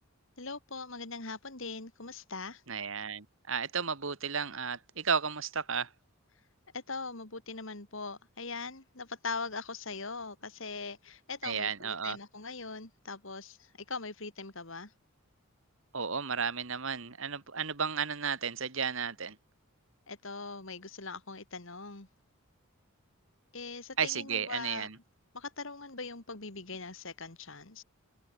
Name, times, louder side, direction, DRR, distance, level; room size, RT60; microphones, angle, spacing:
voice 1, 0.4-2.6 6.7-14.9 20.1-22.1 23.5-24.9 25.3-27.8, left 4 dB, 60° left, 2.5 m, -41 dB
voice 2, 2.7-5.9 11.4-12.2 15.9-19.4 24.0-25.0, right 6 dB, 60° right, 1.6 m, -33 dB
head